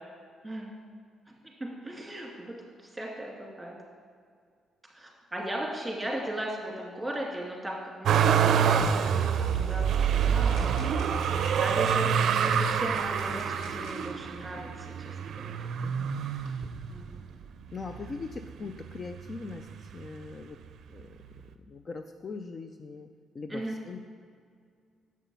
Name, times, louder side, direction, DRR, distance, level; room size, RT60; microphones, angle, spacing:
voice 1, 1.8-2.5 2.9-3.7 5.0-7.7 9.5-10.7 11.5-14.7 15.1-15.6 16.9-17.2 23.5-23.7, right 1 dB, 10° right, -2 dB, 2.2 m, -37 dB
Motor vehicle (road), 8.0-17.2 17.8-18.6 18.9-20.0 21.0-21.1, right 7 dB, 70° right, 0.4 m, -27 dB
sound 1, 10.5-14.1 15.1-15.2 15.9-16.7, left 1 dB, 80° left, 1.6 m, -50 dB
voice 2, 15.8-16.2 16.6-16.9 17.7-20.6 20.9-21.2 21.7-23.1 23.3-24.0, left 4 dB, 40° left, 7 dB, 0.4 m, -41 dB
7.3 x 5.8 x 5.4 m, 2.1 s
cardioid pair, 90°, 0 cm